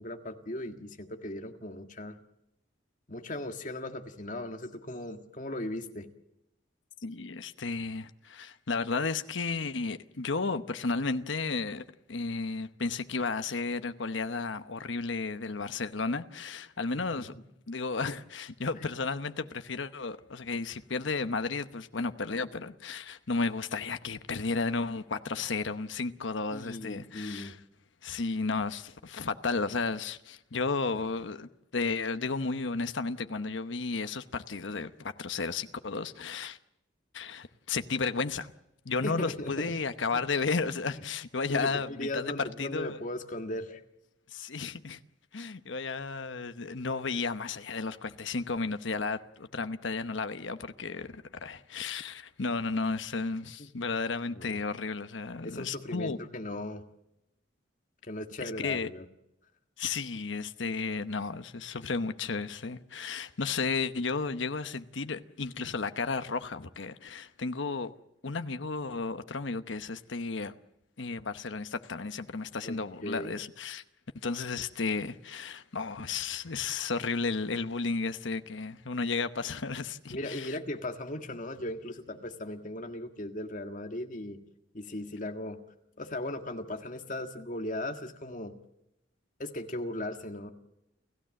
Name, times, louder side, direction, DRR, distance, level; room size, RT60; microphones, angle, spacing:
voice 1, 0.0-2.2 3.1-6.1 17.1-17.2 18.7-18.9 26.5-27.5 39.0-39.7 41.5-43.8 54.3-54.6 55.4-56.8 58.1-59.0 72.6-73.3 80.1-84.4 84.7-85.6 86.0-88.5 89.4-90.5, left 1 dB, 40° left, 1.7 m, -37 dB
voice 2, 7.0-17.3 17.7-27.6 28.0-36.6 37.1-38.5 38.8-43.0 44.3-45.0 45.3-56.2 58.4-58.9 59.8-67.9 68.2-70.5 71.0-73.8 74.2-80.6, left 4 dB, 75° left, 0.9 m, -33 dB
29.5 x 15.0 x 7.7 m
head